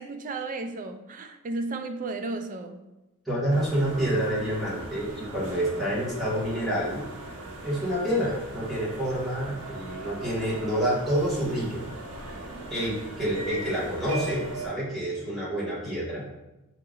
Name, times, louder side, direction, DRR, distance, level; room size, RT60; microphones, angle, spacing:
voice 1, 0.0-2.8, right 3 dB, 35° right, 7 dB, 0.4 m, -34 dB
voice 2, 3.2-7.0 7.6-11.8 12.7-16.3, equal, ahead, -9 dB, 1.6 m, -28 dB
sound 1, 3.5-14.7, right 1 dB, 75° right, 0.8 m, -39 dB
4.6 x 2.8 x 3.9 m, 0.98 s
head